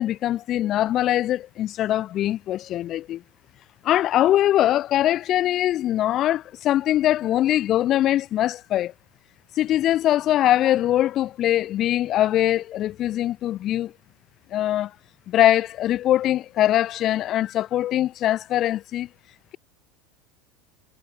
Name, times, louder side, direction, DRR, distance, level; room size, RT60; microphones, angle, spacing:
voice 1, 0.0-3.2 3.8-8.9 9.6-13.9 14.5-14.9 15.3-19.1, left 13 dB, 40° left, 6.6 m, -22 dB
supercardioid pair, 140°, 0 cm